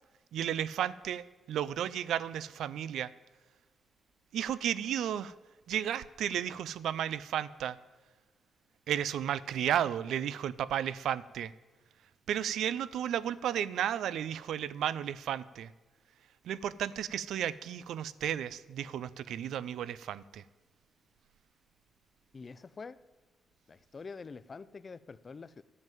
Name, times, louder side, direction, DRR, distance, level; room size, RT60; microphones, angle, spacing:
voice 1, 0.3-3.1 4.3-5.3 5.7-7.8 8.9-11.5 12.3-15.7 16.4-20.4, right 10 dB, 80° right, 0.4 m, -33 dB
voice 2, 22.3-23.0 23.7-25.6, left 4 dB, 30° left, 0.4 m, -46 dB
11.0 x 7.4 x 9.1 m
cardioid pair, 130°, 0 cm